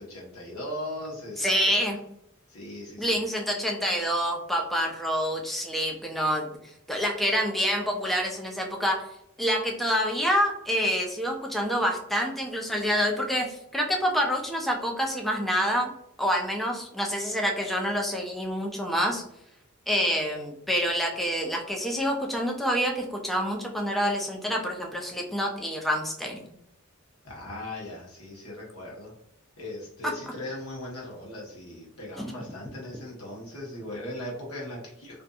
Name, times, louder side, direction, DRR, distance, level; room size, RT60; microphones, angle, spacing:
voice 1, 0.0-1.8 2.5-3.2 27.2-29.1 29.6-35.2, left 1 dB, 85° left, -3 dB, 1.1 m, -39 dB
voice 2, 1.4-2.0 3.0-6.5 6.9-9.0 9.4-15.9 16.2-19.2 19.9-26.4 30.0-30.1 32.2-32.3, equal, ahead, 0 dB, 0.3 m, -27 dB
2.6 x 2.5 x 2.2 m, 0.77 s
head